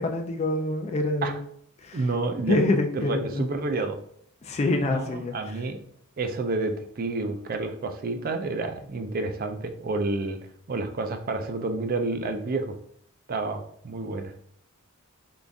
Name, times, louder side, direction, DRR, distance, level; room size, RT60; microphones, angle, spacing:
voice 1, 0.0-1.4 1.8-2.0 2.5-3.4 4.4-5.3, left 2 dB, 30° left, 4 dB, 0.3 m, -26 dB
voice 2, 1.9-4.0 4.8-5.8 6.2-10.4 10.7-12.8 13.3-14.3, right 3 dB, 45° right, 7 dB, 0.4 m, -29 dB
3.8 x 2.4 x 3.4 m, 0.64 s
head